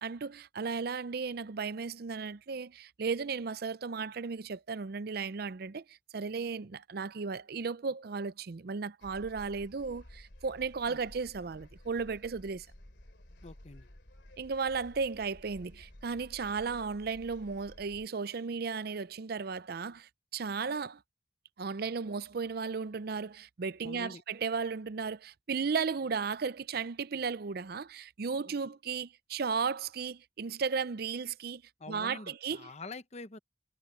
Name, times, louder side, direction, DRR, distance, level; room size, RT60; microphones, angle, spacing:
voice 1, 0.0-12.7 14.4-21.0 21.6-31.6 31.9-32.7, right 5 dB, 55° right, 0.5 m, -35 dB
sound 1, 9.0-18.1, left 1 dB, 70° left, 2.8 m, -54 dB
voice 2, 13.4-13.9 23.8-24.2 31.8-33.4, left 3 dB, 35° left, 0.9 m, -45 dB
head